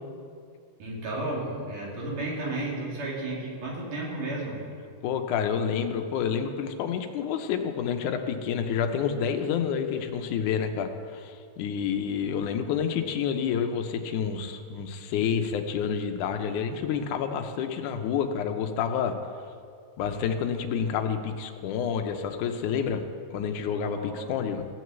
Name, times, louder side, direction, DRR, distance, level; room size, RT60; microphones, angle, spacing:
voice 1, 0.8-4.6 23.9-24.3, right 2 dB, 85° right, -4 dB, 4.3 m, -33 dB
voice 2, 5.0-19.2 20.0-23.0 23.3-24.7, left 7 dB, 80° left, 6 dB, 2.2 m, -29 dB
16.0 x 6.3 x 7.9 m, 2.3 s
omnidirectional pair, 3.6 m